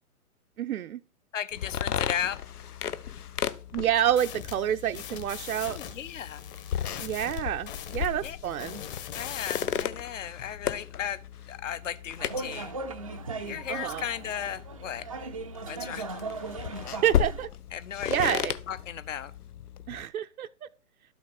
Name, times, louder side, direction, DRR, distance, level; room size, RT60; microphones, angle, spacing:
voice 1, 0.6-1.0 3.7-5.8 7.0-8.8 13.7-14.0 17.0-17.5 18.1-18.5 19.9-20.5, right 10 dB, 75° right, 0.5 m, -28 dB
voice 2, 1.3-2.4 5.7-6.4 8.0-8.4 9.1-12.7 13.4-15.1 15.7-16.2 17.7-18.4 18.7-19.3, left 9 dB, 60° left, 1.0 m, -36 dB
sound 1, 1.5-20.0, left 9 dB, 85° left, 0.7 m, -35 dB
sound 2, 4.1-9.9, left 9 dB, 35° left, 1.5 m, -41 dB
sound 3, 12.2-17.4, right 3 dB, 25° right, 0.4 m, -38 dB
12.0 x 6.0 x 4.2 m
hypercardioid pair, 140°, 44 cm